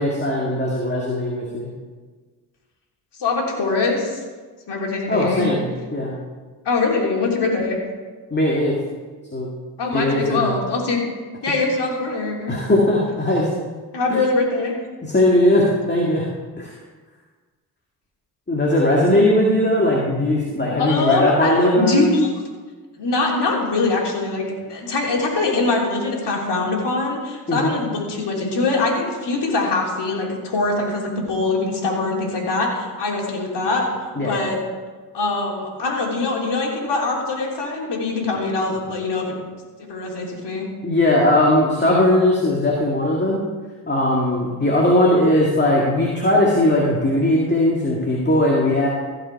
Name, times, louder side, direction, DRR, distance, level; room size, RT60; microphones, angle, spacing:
voice 1, 0.0-1.7 5.1-6.1 8.3-8.8 9.3-9.5 9.9-10.5 12.5-13.5 14.1-14.2 15.0-16.3 16.6-16.7 18.5-22.2 27.5-27.7 34.2-34.4 40.8-43.4 43.9-48.9, left 1 dB, 20° left, -3 dB, 2.2 m, -19 dB
voice 2, 3.2-4.2 4.7-5.5 6.6-7.8 9.8-11.0 11.4-12.5 13.9-14.8 20.8-22.3 23.0-24.4 24.7-34.6 35.1-39.2 39.9-40.7, left 3 dB, 60° left, -2 dB, 3.3 m, -23 dB
15.5 x 5.8 x 4.8 m, 1.4 s
hypercardioid pair, 50°, 47 cm